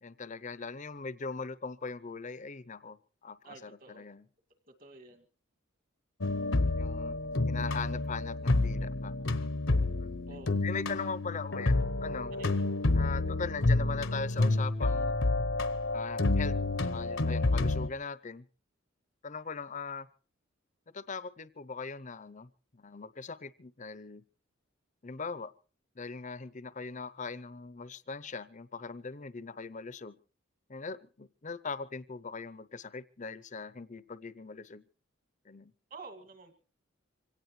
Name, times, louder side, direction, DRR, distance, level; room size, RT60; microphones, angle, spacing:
voice 1, 0.0-4.3 6.8-7.2 7.5-9.1 10.0-10.2 10.6-12.3 12.9-15.1 15.9-16.6 16.8-18.5 19.2-20.1 20.9-24.2 25.0-25.5 26.0-30.2 30.7-34.8 35.5-35.7, left 4 dB, 35° left, 16 dB, 0.7 m, -40 dB
voice 2, 3.4-4.1 4.8-5.2 10.3-10.6 12.3-12.6 35.9-36.5, right 3 dB, 45° right, 5 dB, 2.3 m, -49 dB
sound 1, 6.2-17.9, left 2 dB, 65° left, 0.9 m, -29 dB
25.0 x 17.5 x 3.2 m, 0.38 s
head